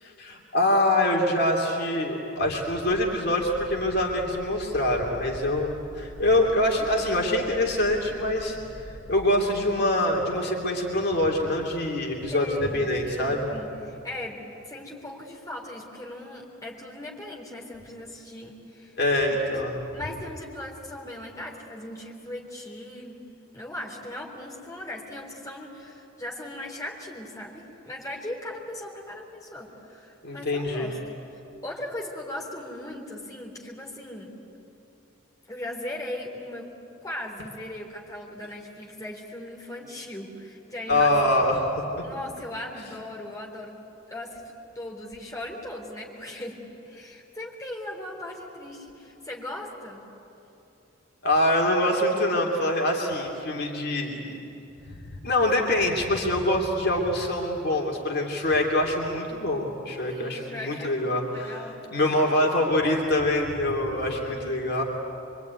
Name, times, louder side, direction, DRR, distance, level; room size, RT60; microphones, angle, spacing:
voice 1, 0.0-8.6 8.8-13.5 19.0-19.8 30.2-30.9 40.9-42.0 42.7-42.9 51.2-54.3 54.9-64.8, left 1 dB, 55° left, 0 dB, 2.9 m, -25 dB
sound 1, 2.9-9.2, equal, 5° right, 2.7 m, -45 dB
voice 2, 12.3-19.0 19.3-19.6 19.9-23.1 23.5-31.0 31.6-34.4 35.5-36.7 37.0-41.1 41.4-41.5 42.0-43.8 44.1-50.0 60.0-61.8 63.9-64.8, left 1 dB, 15° left, -2 dB, 3.7 m, -38 dB
25.0 x 24.5 x 9.5 m, 2.9 s
head